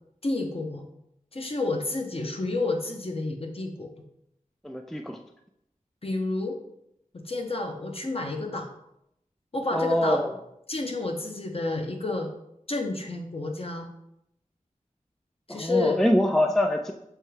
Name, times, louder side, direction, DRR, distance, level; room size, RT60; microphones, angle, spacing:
voice 1, 0.2-0.8 1.3-3.9 6.0-6.6 7.2-8.7 9.5-10.2 10.7-12.3 12.7-13.9 15.5-16.0, left 2 dB, 40° left, 3 dB, 0.7 m, -30 dB
voice 2, 4.6-5.2 9.7-10.4 15.5-16.9, left 1 dB, ahead, 4 dB, 0.3 m, -24 dB
6.3 x 2.3 x 3.2 m, 0.80 s
wide cardioid pair, 45°, 14 cm